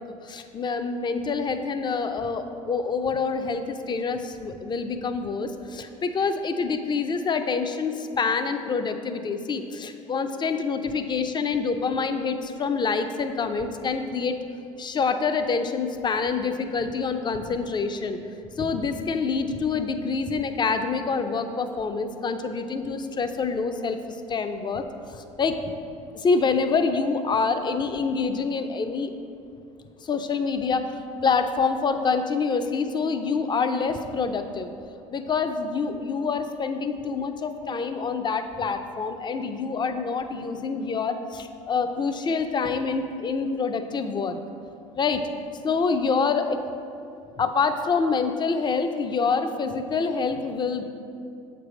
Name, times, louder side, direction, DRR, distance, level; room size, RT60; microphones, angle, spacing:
voice 1, 0.2-14.4 14.8-18.2 18.6-24.8 25.1-25.6 26.1-29.1 30.0-30.9 31.2-34.7 35.1-44.4 45.0-45.2 45.6-46.6 47.4-50.8, left 5 dB, 25° left, 8 dB, 0.5 m, -26 dB
7.7 x 3.3 x 5.0 m, 2.5 s
hypercardioid pair, 75°, 17 cm